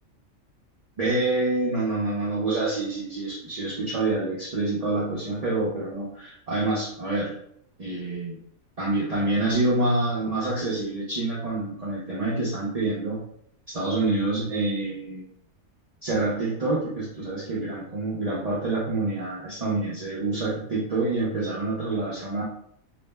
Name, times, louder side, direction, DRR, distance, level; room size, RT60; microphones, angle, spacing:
voice 1, 1.0-7.3 7.8-8.4 8.8-13.2 13.7-15.3 16.0-22.4, right 2 dB, 60° right, -6 dB, 0.3 m, -27 dB
2.4 x 2.0 x 3.3 m, 0.70 s
omnidirectional pair, 1.4 m